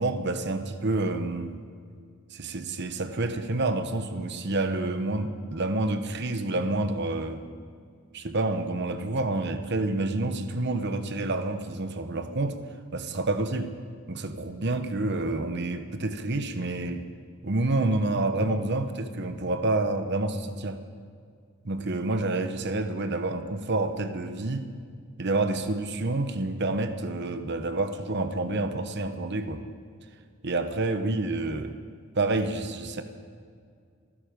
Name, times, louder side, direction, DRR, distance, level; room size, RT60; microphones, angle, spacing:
voice 1, 0.0-1.6 2.3-7.4 8.1-12.6 12.9-13.7 14.1-17.1 17.4-20.8 21.6-24.7 25.2-29.6 30.4-31.7 32.1-33.0, right 2 dB, 55° right, 8 dB, 1.0 m, -28 dB
27.5 x 10.0 x 5.2 m, 2.1 s
head